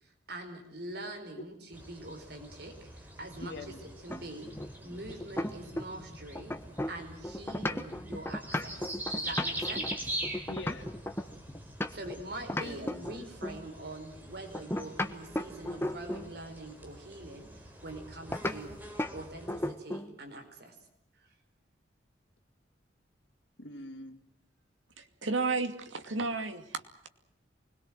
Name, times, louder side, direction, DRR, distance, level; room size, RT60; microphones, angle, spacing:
voice 1, 0.0-4.5 4.8-6.5 6.9-8.8 9.1-9.9 11.9-18.7 19.1-20.7 21.2-21.3, right 1 dB, 55° right, 5 dB, 4.8 m, -44 dB
sound 1, 1.7-19.7, right 1 dB, 10° right, 4.3 m, -43 dB
voice 2, 3.4-3.8 10.5-10.9 12.5-13.1 23.6-24.2, left 2 dB, 70° left, 7 dB, 2.6 m, -43 dB
sound 2, 4.1-6.1 6.4-12.2 12.5-13.7 14.5-16.3 18.3-18.6 19.0-19.2 19.5-20.1, left 1 dB, 10° left, 1.3 m, -35 dB
voice 3, 25.0-27.1, right 3 dB, 85° right, 7 dB, 2.6 m, -33 dB
25.5 x 21.0 x 7.7 m, 0.75 s
head